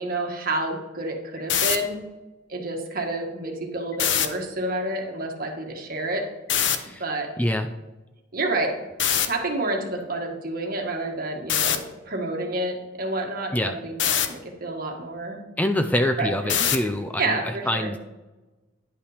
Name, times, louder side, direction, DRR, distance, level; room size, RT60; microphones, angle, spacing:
voice 1, 0.0-2.0 2.5-6.3 7.0-7.3 8.3-8.8 9.2-15.4 16.2-16.7 17.2-17.9, right 2 dB, 50° right, 2 dB, 1.6 m, -29 dB
sound 1, 1.4-1.8 3.9-4.3 6.5-6.8 9.0-9.3 11.5-11.8 14.0-14.3 16.5-16.9, left 9 dB, 75° left, 0.8 m, -22 dB
voice 2, 6.7-7.0 7.4-7.7 13.5-13.8 15.6-18.0, left 1 dB, 10° left, 7 dB, 0.4 m, -25 dB
10.5 x 5.6 x 4.9 m, 1.1 s
head